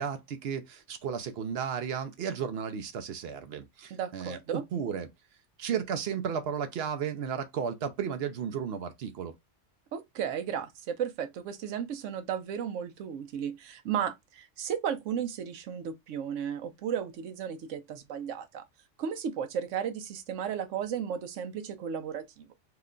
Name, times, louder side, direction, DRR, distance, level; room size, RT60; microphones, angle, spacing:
voice 1, 0.0-5.1 5.6-9.3, right 7 dB, 65° right, 0.7 m, -34 dB
voice 2, 3.9-4.6 9.9-18.6 19.0-22.5, right 8 dB, 85° right, 1.0 m, -34 dB
2.9 x 2.2 x 3.6 m
omnidirectional pair, 1.3 m